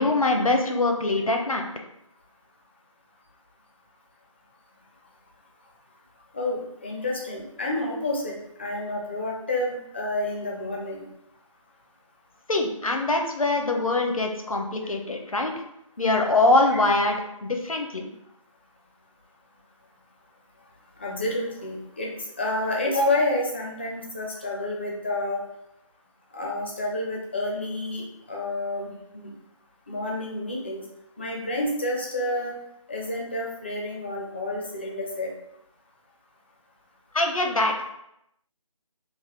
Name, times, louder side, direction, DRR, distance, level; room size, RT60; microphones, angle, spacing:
voice 1, 0.0-1.7 12.5-15.5 16.0-18.0 37.1-37.9, left 2 dB, 85° left, 3 dB, 0.7 m, -23 dB
voice 2, 6.3-11.0 16.7-16.8 21.0-25.4 26.3-29.3 29.9-30.8 31.2-32.5 32.9-35.3, left 2 dB, 20° left, -2 dB, 0.4 m, -29 dB
3.4 x 2.4 x 3.8 m, 0.81 s
figure-of-eight pair, 160°, 17 cm